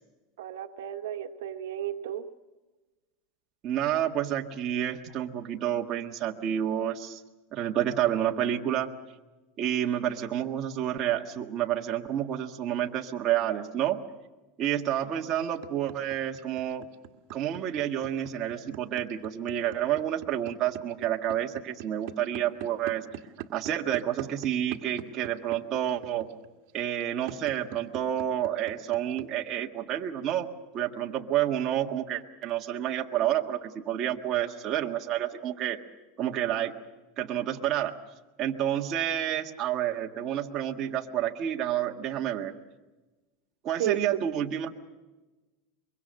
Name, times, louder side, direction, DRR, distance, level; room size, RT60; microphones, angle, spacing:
voice 1, 0.4-2.3 43.8-44.0, right 11 dB, 90° right, 7 dB, 1.2 m, -33 dB
voice 2, 3.6-7.2 7.5-8.9 9.6-14.0 14.6-16.8 17.3-23.0 23.5-26.3 26.7-30.5 30.7-35.8 36.2-36.7 37.2-37.9 38.4-42.5 43.6-44.8, right 11 dB, 35° right, 2 dB, 1.6 m, -29 dB
sound 1, 15.4-29.3, right 14 dB, 60° right, 1.8 m, -41 dB
24.5 x 23.0 x 6.5 m, 1.2 s
supercardioid pair, 150°, 0 cm